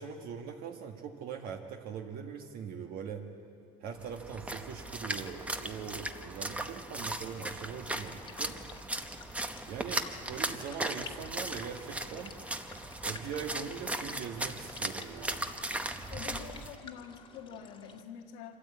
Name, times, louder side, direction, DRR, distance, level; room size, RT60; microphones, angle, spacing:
voice 1, 0.0-3.3 3.8-8.6 9.7-12.3 13.0-15.5, right 7 dB, 55° right, 3 dB, 1.4 m, -41 dB
Splash splatter, 4.0-16.7, right 1 dB, 5° right, 0.8 m, -38 dB
sound 1, 7.0-18.0, left 5 dB, 25° left, 1.5 m, -53 dB
voice 2, 16.1-18.6, left 8 dB, 85° left, 3 dB, 1.5 m, -46 dB
25.5 x 13.5 x 8.6 m, 2.7 s
cardioid pair, 145°, 18 cm